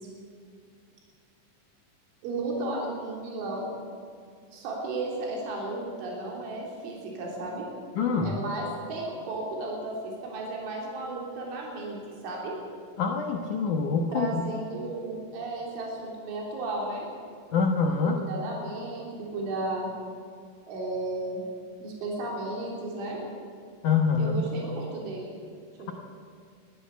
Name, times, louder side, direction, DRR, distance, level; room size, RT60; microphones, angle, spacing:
voice 1, 2.2-3.7 4.5-7.7 8.2-12.5 14.1-17.1 18.2-19.9 20.7-21.4 21.8-23.2 24.2-25.4 25.8-25.9, right 2 dB, 70° right, -2 dB, 5.8 m, -34 dB
voice 2, 8.0-8.4 13.0-14.4 17.5-18.2 23.8-24.4, left 5 dB, 85° left, 3 dB, 1.7 m, -25 dB
21.0 x 15.0 x 8.3 m, 2.3 s
omnidirectional pair, 5.7 m